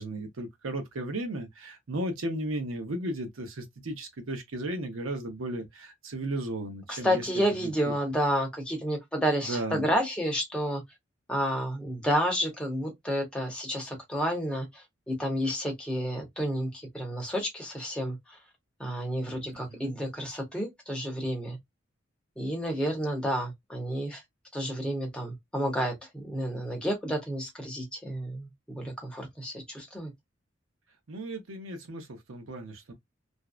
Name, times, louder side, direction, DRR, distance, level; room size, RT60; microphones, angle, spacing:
voice 1, 0.0-7.9 9.5-9.9 19.5-20.0 31.1-32.9, right 1 dB, 85° right, 0.7 m, -35 dB
voice 2, 6.9-10.8 11.3-18.4 18.8-21.6 22.4-24.2 24.5-30.1, equal, 5° left, 0.7 m, -30 dB
2.6 x 2.1 x 2.3 m
head